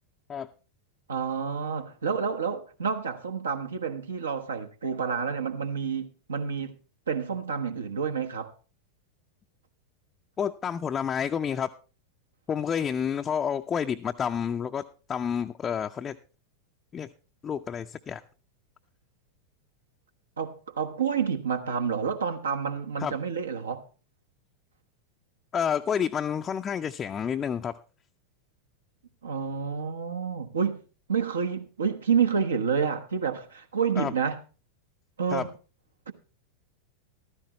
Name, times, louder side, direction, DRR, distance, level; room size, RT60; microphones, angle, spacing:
voice 1, 1.1-6.7 7.1-8.5 20.4-23.8 29.2-30.8 31.1-34.4 35.2-35.5 36.1-36.2, right 6 dB, 70° right, 1.1 m, -29 dB
voice 2, 10.4-11.7 12.5-16.2 16.9-17.1 17.4-18.2 23.0-23.1 25.5-27.8 34.0-34.1 35.3-35.5, left 7 dB, 20° left, 0.5 m, -29 dB
14.5 x 13.0 x 3.0 m
figure-of-eight pair, 90°, 0 cm